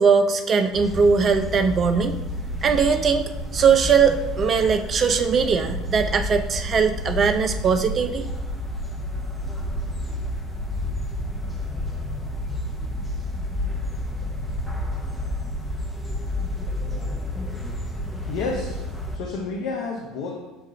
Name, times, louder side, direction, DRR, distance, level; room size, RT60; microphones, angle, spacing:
voice 1, 0.0-2.2 2.6-8.2, right 5 dB, 40° right, 8 dB, 0.4 m, -20 dB
sound 1, 0.7-19.2, left 1 dB, 10° left, 0.8 m, -30 dB
voice 2, 18.1-20.6, left 4 dB, 65° left, 1 dB, 0.5 m, -31 dB
6.9 x 2.4 x 2.8 m, 1.0 s
hypercardioid pair, 65°, 0 cm